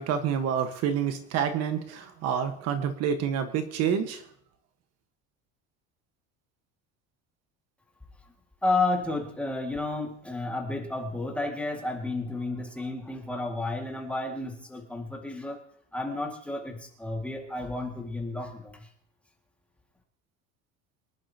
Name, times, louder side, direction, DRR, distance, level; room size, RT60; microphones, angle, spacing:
voice 1, 0.0-4.2, right 8 dB, 55° right, 8 dB, 1.4 m, -28 dB
voice 2, 8.6-15.6 15.9-18.9, left 2 dB, 5° left, 1 dB, 2.0 m, -31 dB
24.5 x 11.0 x 2.9 m, 0.65 s
cardioid pair, 160°, 31 cm